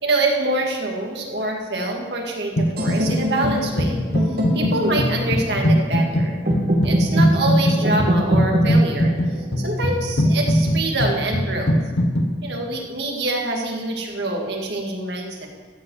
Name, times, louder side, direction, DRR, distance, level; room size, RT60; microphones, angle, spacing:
voice 1, 0.0-4.0 4.5-6.4 6.8-9.1 9.6-11.8 12.4-15.5, right 2 dB, 80° right, 1 dB, 1.9 m, -25 dB
sound 1, 2.6-3.2 3.4-12.3, equal, 80° left, 1.2 m, -21 dB
sound 2, 2.8-10.7, equal, 60° right, 2.0 m, -25 dB
14.0 x 5.3 x 7.7 m, 1.4 s
head